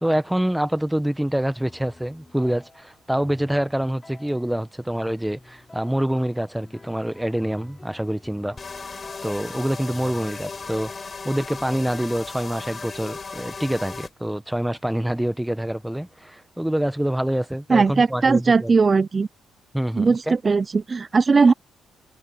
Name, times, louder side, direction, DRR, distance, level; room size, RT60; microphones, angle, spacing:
voice 1, 0.0-9.0 9.2-18.7 19.7-20.3, right 1 dB, 5° right, 1.2 m, -26 dB
sound 1, 1.6-12.3, left 2 dB, 20° left, 3.8 m, -49 dB
sound 2, 8.6-14.1, left 4 dB, 35° left, 4.2 m, -36 dB
voice 2, 17.7-19.3 20.0-21.5, right 4 dB, 35° right, 0.4 m, -18 dB
cardioid pair, 90°, 0 cm